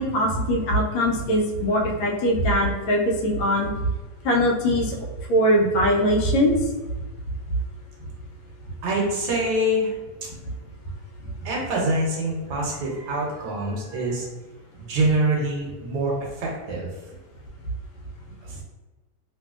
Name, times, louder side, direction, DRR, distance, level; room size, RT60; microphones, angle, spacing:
voice 1, 0.0-3.7 4.2-5.0 5.3-6.6, equal, 90° left, 0 dB, 1.4 m, -21 dB
voice 2, 8.8-9.9 11.4-14.3 14.7-16.9 18.4-18.6, right 1 dB, 70° right, -2 dB, 1.2 m, -25 dB
3.1 x 2.6 x 2.4 m, 1.2 s
omnidirectional pair, 2.1 m